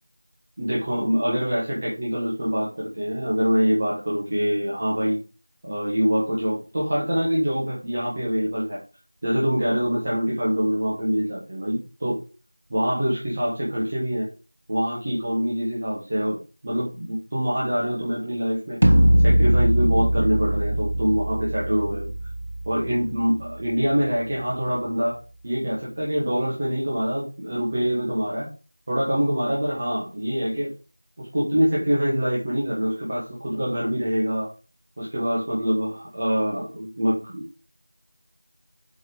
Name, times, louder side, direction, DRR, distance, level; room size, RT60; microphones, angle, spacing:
voice 1, 0.6-5.2 5.6-8.8 9.2-12.2 12.7-14.3 14.7-16.4 16.6-18.9 19.2-22.1 22.6-25.2 25.4-28.5 28.9-30.7 31.2-34.5 35.0-37.6, equal, 15° right, -6 dB, 1.3 m, -25 dB
sound 1, 18.8-24.8, right 1 dB, 40° right, 0.7 m, -22 dB
7.8 x 4.6 x 4.8 m, 0.33 s
figure-of-eight pair, 180°, 0 cm